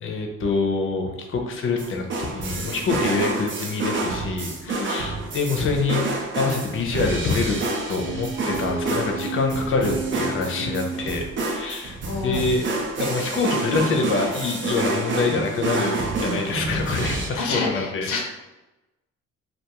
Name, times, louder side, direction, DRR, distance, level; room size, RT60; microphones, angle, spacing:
voice 1, 0.0-6.0 6.3-7.6 7.9-18.2, left 4 dB, 45° left, 2 dB, 0.6 m, -26 dB
sound 1, 1.8-17.3, right 2 dB, 40° right, 0.5 m, -28 dB
voice 2, 4.6-5.0 12.1-12.5 17.4-18.2, left 4 dB, 85° left, 0 dB, 0.6 m, -29 dB
sound 2, 7.9-11.7, right 4 dB, 80° right, 0.8 m, -32 dB
2.3 x 2.3 x 2.9 m, 1.0 s
cardioid pair, 90°, 30 cm